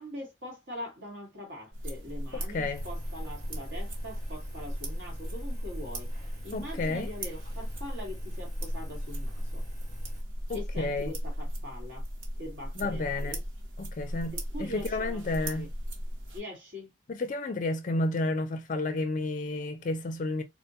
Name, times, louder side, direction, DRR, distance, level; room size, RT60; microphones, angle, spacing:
voice 1, 0.0-6.1 6.4-9.7 10.5-12.1 12.4-13.4 14.3-15.7 16.3-16.9, left 1 dB, 70° right, 1.4 m, -43 dB
sound 1, 1.7-16.4, equal, 90° right, 1.2 m, -36 dB
voice 2, 2.3-2.8 6.5-7.1 10.5-11.1 12.8-13.4 13.8-15.7 17.1-20.4, left 2 dB, 40° left, 0.4 m, -31 dB
Engine, 2.7-10.2, left 1 dB, 50° right, 1.3 m, -50 dB
4.1 x 2.2 x 2.7 m
head